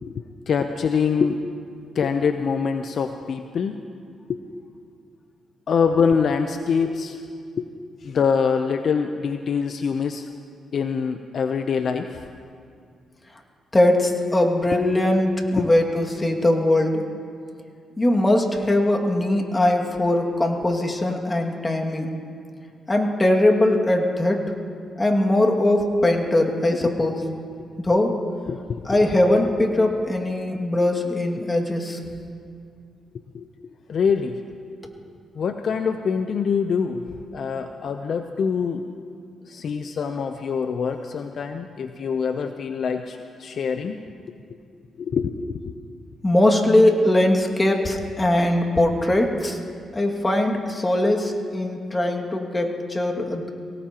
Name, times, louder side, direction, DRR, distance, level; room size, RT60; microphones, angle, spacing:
voice 1, 0.0-1.4 1.9-3.8 4.3-4.4 5.7-7.2 7.6-7.7 8.0-10.3 10.7-12.2 14.7-14.8 15.6-15.7 26.7-26.9 28.5-29.0 33.3-33.4 33.9-34.4 35.3-38.8 39.5-44.0 45.0-45.7, left 6 dB, 60° left, 7 dB, 0.7 m, -24 dB
voice 2, 13.7-17.0 18.0-22.1 22.9-24.5 25.0-27.2 27.8-28.1 28.9-32.0 46.2-49.6 49.9-53.5, left 1 dB, 25° left, 2 dB, 2.2 m, -20 dB
23.5 x 18.0 x 3.0 m, 2.3 s
supercardioid pair, 60°, 0 cm